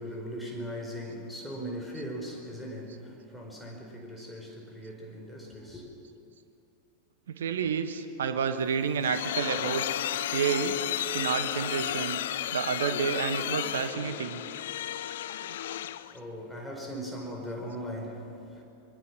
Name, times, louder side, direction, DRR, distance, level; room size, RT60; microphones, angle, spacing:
voice 1, 0.0-5.9 15.6-15.8 16.1-18.6, equal, 5° left, 0 dB, 4.9 m, -39 dB
voice 2, 7.3-9.8 10.3-10.8 11.1-12.2 12.5-14.4, right 6 dB, 65° right, 9 dB, 1.5 m, -29 dB
sound 1, 8.6-16.2, left 12 dB, 60° left, 0.7 m, -33 dB
24.0 x 22.5 x 6.2 m, 2.7 s
figure-of-eight pair, 90°, 0 cm